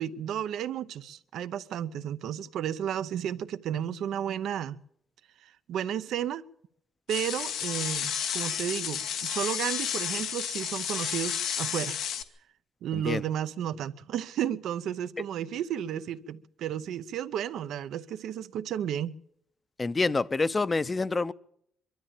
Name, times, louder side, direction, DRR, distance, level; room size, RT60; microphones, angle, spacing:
voice 1, 0.0-4.8 5.4-6.4 7.1-12.0 12.8-19.2, right 10 dB, 75° right, 0.8 m, -33 dB
sound 1, 7.1-12.2, left 8 dB, 85° left, 1.4 m, -32 dB
voice 2, 19.8-21.3, left 3 dB, 25° left, 0.7 m, -27 dB
23.0 x 13.0 x 8.8 m
cardioid pair, 90°, 0 cm